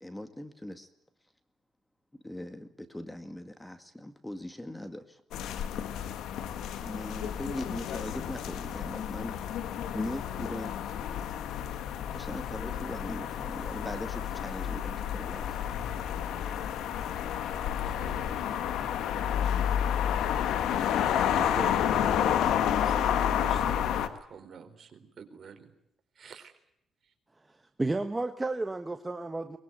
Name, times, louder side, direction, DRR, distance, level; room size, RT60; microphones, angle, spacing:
voice 1, 0.0-0.9 2.2-5.2 6.8-9.4 9.9-10.8 12.1-15.7, left 1 dB, 10° left, 9 dB, 2.0 m, -40 dB
sound 1, 5.3-24.1, left 9 dB, 85° left, 1.8 m, -30 dB
voice 2, 17.8-18.4 21.3-24.0 24.3-25.7 26.2-26.5, right 6 dB, 50° right, 7 dB, 4.2 m, -45 dB
voice 3, 27.5-29.6, right 2 dB, 15° right, 8 dB, 1.4 m, -32 dB
23.0 x 21.5 x 9.4 m, 0.77 s
cardioid pair, 90°, 0 cm